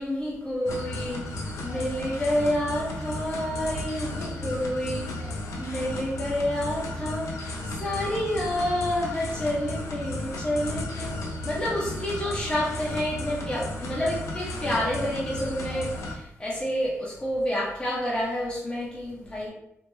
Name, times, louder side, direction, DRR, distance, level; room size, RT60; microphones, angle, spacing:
voice 1, 0.0-5.3 5.6-19.5, left 1 dB, 20° left, -6 dB, 0.8 m, -29 dB
sound 1, 0.7-16.2, left 1 dB, 85° left, 0.5 m, -34 dB
3.3 x 2.1 x 3.1 m, 0.79 s
wide cardioid pair, 140°, 5 cm